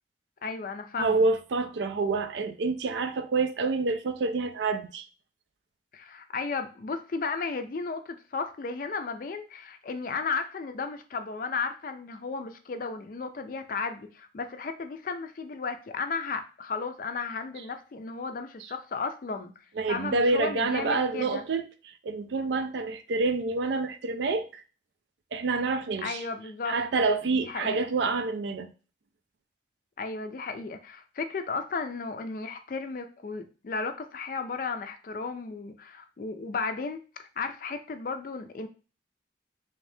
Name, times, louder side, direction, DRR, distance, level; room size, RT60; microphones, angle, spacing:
voice 1, 0.4-1.2 5.9-19.5 19.9-21.4 26.0-26.7 27.3-27.8 30.0-38.7, left 4 dB, 50° left, 0.4 m, -34 dB
voice 2, 1.0-5.1 19.8-24.6 25.3-26.2 26.7-28.7, right 3 dB, 80° right, 0.4 m, -27 dB
3.4 x 2.7 x 3.3 m
head